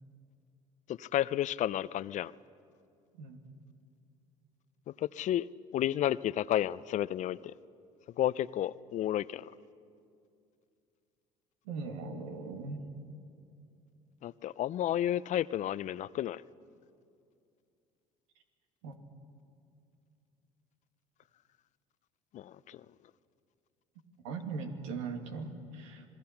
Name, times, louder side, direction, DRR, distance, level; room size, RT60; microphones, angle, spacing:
voice 1, 0.9-2.3 4.9-5.5 5.7-7.5 8.2-9.5 14.2-16.4 22.3-22.9, left 12 dB, 50° left, 19 dB, 0.5 m, -32 dB
voice 2, 11.7-12.8 18.8-18.9 24.2-26.0, right 4 dB, 85° right, 5 dB, 2.2 m, -39 dB
27.5 x 20.0 x 5.8 m, 2.5 s
supercardioid pair, 75°, 15 cm